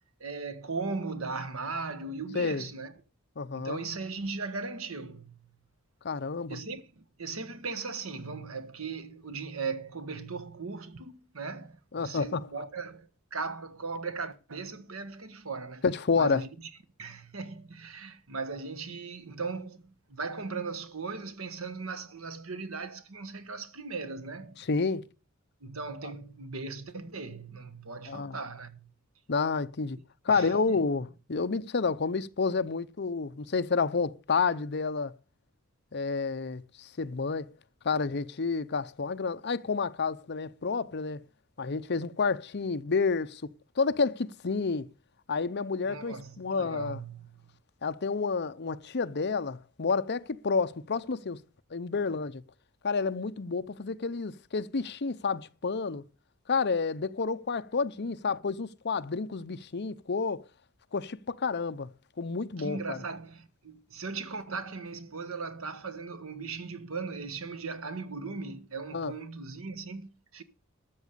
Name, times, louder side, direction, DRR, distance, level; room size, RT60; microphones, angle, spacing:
voice 1, 0.2-2.9 3.5-5.4 6.5-15.8 16.2-16.5 17.0-24.6 25.6-28.9 30.3-30.5 45.8-47.5 62.6-70.4, right 4 dB, 80° right, 1.4 m, -38 dB
voice 2, 2.3-2.7 3.4-3.8 6.0-6.6 11.9-12.4 15.8-16.4 24.7-25.1 28.1-28.4 29.3-30.0 30.2-35.1 35.9-37.5 37.8-41.2 41.6-43.4 43.8-44.9 45.3-47.0 47.8-51.4 51.7-52.4 52.8-56.0 56.5-60.4 60.9-61.9 62.2-63.0 68.9-69.1, left 4 dB, 55° left, 0.7 m, -30 dB
13.5 x 7.3 x 6.8 m
head